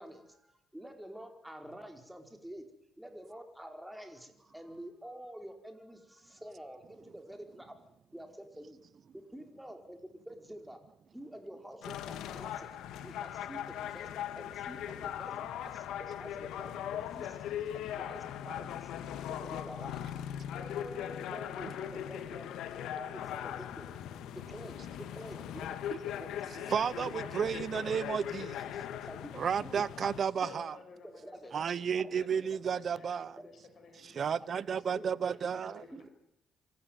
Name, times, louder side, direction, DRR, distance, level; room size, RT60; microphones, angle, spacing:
voice 1, 0.0-2.7 3.0-7.8 8.1-8.8 9.1-10.8 11.1-12.7 13.0-15.3 15.6-17.4 17.7-18.9 19.3-20.0 20.5-22.5 22.7-23.9 24.3-26.9 27.2-27.5 27.8-28.0 28.9-29.8 31.0-31.6 31.9-32.1 33.4-33.5 34.4-34.5 34.9-35.1, equal, 5° right, 5 dB, 4.8 m, -48 dB
sound 1, 11.8-30.2, left 10 dB, 85° left, 1.7 m, -40 dB
voice 2, 26.7-28.7 29.3-30.7 31.5-33.4 34.0-35.8, right 7 dB, 55° right, 19 dB, 0.9 m, -32 dB
voice 3, 30.2-36.1, left 4 dB, 55° left, 6 dB, 5.9 m, -54 dB
26.0 x 14.5 x 9.4 m, 0.82 s
cardioid pair, 90°, 0 cm